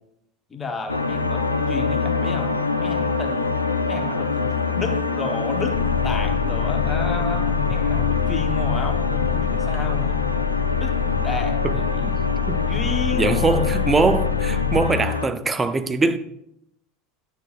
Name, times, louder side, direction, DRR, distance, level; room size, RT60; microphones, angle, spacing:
voice 1, 0.5-3.5 3.9-10.2 10.8-11.0 11.2-12.1 12.5-13.7 14.8-14.9, left 4 dB, 20° left, 1.0 m, -32 dB
sound 1, 0.9-15.3, left 4 dB, 85° left, 0.4 m, -25 dB
sound 2, 5.7-14.8, left 8 dB, 55° left, 1.2 m, -26 dB
voice 2, 13.1-16.2, right 4 dB, 20° right, 0.5 m, -22 dB
9.9 x 6.6 x 2.4 m
figure-of-eight pair, 75°, 0 cm